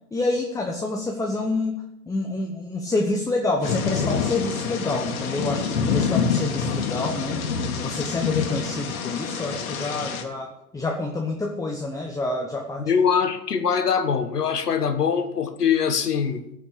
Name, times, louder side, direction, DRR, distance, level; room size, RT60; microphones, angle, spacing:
voice 1, 0.1-7.4 7.8-12.9, left 2 dB, 5° left, 1.1 m, -28 dB
Thunder / Rain, 3.6-10.2, left 6 dB, 65° left, 2.3 m, -27 dB
voice 2, 12.8-16.4, left 7 dB, 80° left, 1.4 m, -22 dB
14.5 x 5.8 x 8.7 m
hypercardioid pair, 105°, 46 cm